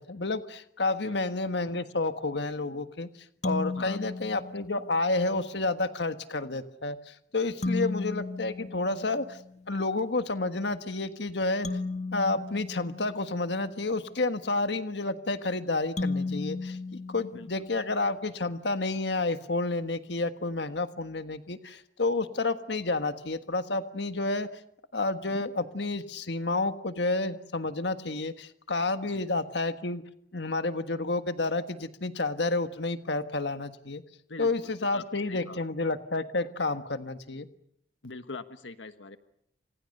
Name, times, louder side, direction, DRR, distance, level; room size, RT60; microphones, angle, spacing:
voice 1, 0.1-3.1 3.4-9.4 9.7-11.8 12.1-24.5 24.9-30.0 30.3-34.0 34.4-37.5, left 2 dB, 65° left, 9 dB, 1.5 m, -30 dB
sound 1, 3.4-5.1 7.6-9.6 11.6-13.8 16.0-18.0, left 3 dB, 40° left, 1.8 m, -35 dB
voice 2, 34.3-35.6 38.0-39.2, left 3 dB, 85° left, 9 dB, 1.4 m, -43 dB
30.0 x 27.5 x 6.7 m, 0.69 s
head